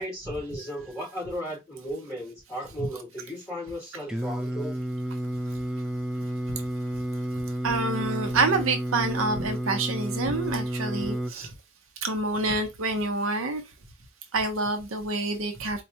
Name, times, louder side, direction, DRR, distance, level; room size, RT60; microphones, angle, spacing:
voice 1, 0.0-4.8 8.0-8.1, equal, 15° left, 2.5 m, -35 dB
Singing, 4.1-11.3, right 1 dB, 5° right, 0.4 m, -31 dB
voice 2, 7.6-11.5 12.0-13.6 14.3-15.8, right 3 dB, 65° right, 0.7 m, -27 dB
4.3 x 2.2 x 2.8 m
head